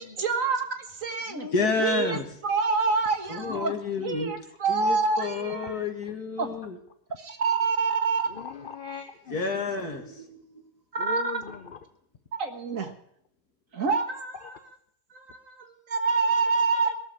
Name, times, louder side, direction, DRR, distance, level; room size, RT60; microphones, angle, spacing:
voice 1, 0.0-1.5 1.8-3.7 4.0-5.9 6.4-6.5 7.2-8.3 10.9-11.4 12.4-12.9 13.7-14.5 15.1-16.9, right 4 dB, 50° right, 6 dB, 1.7 m, -27 dB
voice 2, 1.5-2.3 3.3-4.3 4.7-6.8 9.3-10.7, left 4 dB, 65° left, 4 dB, 2.5 m, -30 dB
voice 3, 3.4-4.1 5.6-5.7 8.3-9.4 11.0-11.8 14.4-14.6, left 6 dB, 45° left, 8 dB, 0.7 m, -40 dB
18.0 x 7.3 x 9.7 m, 0.68 s
omnidirectional pair, 1.8 m